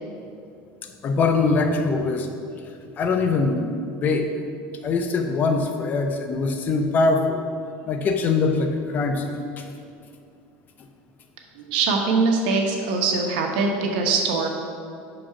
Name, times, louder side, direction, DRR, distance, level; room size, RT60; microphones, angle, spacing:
voice 1, 0.8-2.3 2.5-2.6 3.0-3.7 4.0-4.3 4.8-7.4 7.8-9.7, left 3 dB, 35° left, 6 dB, 0.7 m, -23 dB
voice 2, 11.5-14.5, right 4 dB, 80° right, 2 dB, 1.0 m, -22 dB
5.6 x 5.3 x 5.8 m, 2.5 s
supercardioid pair, 130°, 5 cm